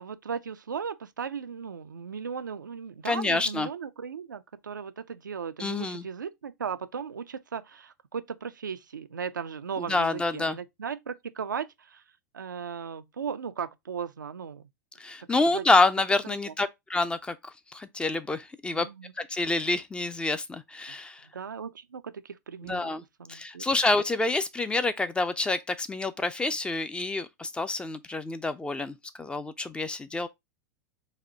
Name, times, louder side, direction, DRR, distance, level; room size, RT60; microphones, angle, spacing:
voice 1, 0.0-12.0 12.3-14.7 15.2-15.6 16.5-16.6 18.7-19.1 20.9-21.0 21.2-22.9 23.2-23.8, right 6 dB, 80° right, 0.4 m, -37 dB
voice 2, 3.0-3.7 5.6-6.0 9.9-10.6 15.0-17.4 17.7-18.9 19.2-21.2 22.6-23.0 23.3-30.3, left 3 dB, 10° left, 0.4 m, -27 dB
4.1 x 2.7 x 3.7 m
figure-of-eight pair, 90°, 10 cm